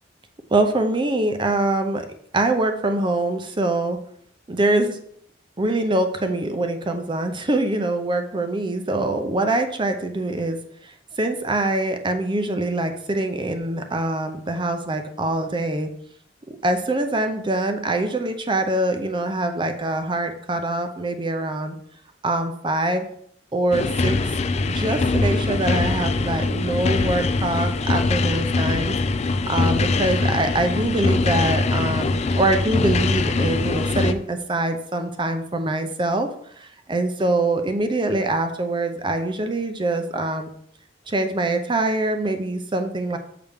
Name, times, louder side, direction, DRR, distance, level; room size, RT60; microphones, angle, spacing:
voice 1, 0.5-2.1 2.3-4.0 4.5-5.0 5.6-10.6 10.8-15.9 16.5-21.8 22.2-23.1 23.5-24.2 24.7-29.0 29.5-36.3 36.6-40.5 41.1-43.2, right 2 dB, 25° right, 7 dB, 0.6 m, -24 dB
sound 1, 23.7-34.1, left 3 dB, 35° left, 0.4 m, -22 dB
6.7 x 5.9 x 3.5 m, 0.67 s
head